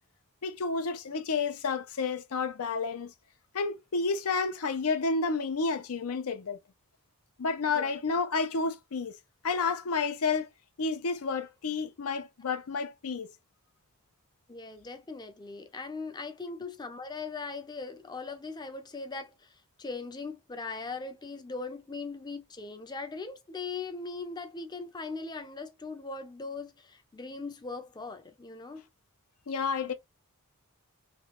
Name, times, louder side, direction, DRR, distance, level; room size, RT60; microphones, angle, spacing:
voice 1, 0.4-3.1 3.5-6.6 7.4-9.2 9.4-10.5 10.8-13.3 29.5-29.9, left 4 dB, 75° left, 0.6 m, -30 dB
voice 2, 14.5-28.8, left 4 dB, 20° left, 0.5 m, -40 dB
3.1 x 2.3 x 2.9 m
head